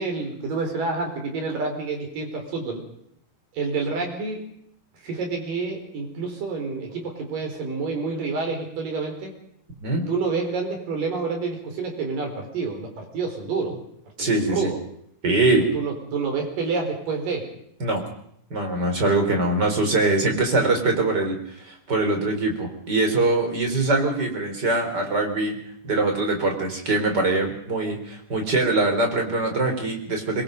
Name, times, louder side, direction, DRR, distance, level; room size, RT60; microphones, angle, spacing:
voice 1, 0.0-2.8 3.5-4.4 5.0-9.3 10.0-13.8 14.2-14.8 15.5-17.5, right 4 dB, 80° right, 3 dB, 6.2 m, -28 dB
voice 2, 9.8-10.1 14.2-14.7 15.2-15.7 17.8-18.0 18.5-25.6 25.8-30.4, right 2 dB, 30° right, 3 dB, 4.6 m, -23 dB
24.5 x 22.5 x 5.4 m, 0.70 s
omnidirectional pair, 3.8 m